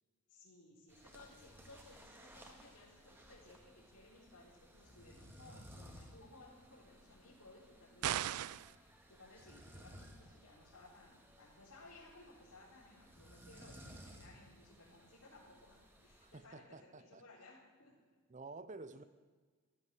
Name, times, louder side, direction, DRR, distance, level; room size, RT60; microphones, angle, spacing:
voice 1, 0.3-18.0, left 2 dB, 90° left, -7 dB, 3.9 m, -60 dB
sound 1, 0.9-16.4, equal, 10° right, 1.7 m, -59 dB
sound 2, 8.0-8.7, right 11 dB, 85° right, 0.4 m, -36 dB
voice 2, 16.2-17.2 18.3-19.0, right 3 dB, 35° right, 13 dB, 0.7 m, -51 dB
14.5 x 12.5 x 7.6 m, 1.5 s
head